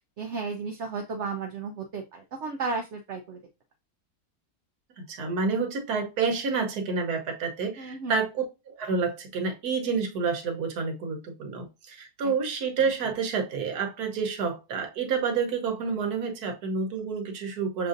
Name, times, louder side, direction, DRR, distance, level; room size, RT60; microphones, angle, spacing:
voice 1, 0.2-3.4 7.8-8.2 12.2-12.3, right 4 dB, 65° right, 0.7 m, -34 dB
voice 2, 5.0-17.9, right 5 dB, 80° right, 1.4 m, -29 dB
6.8 x 2.6 x 2.5 m
omnidirectional pair, 1.6 m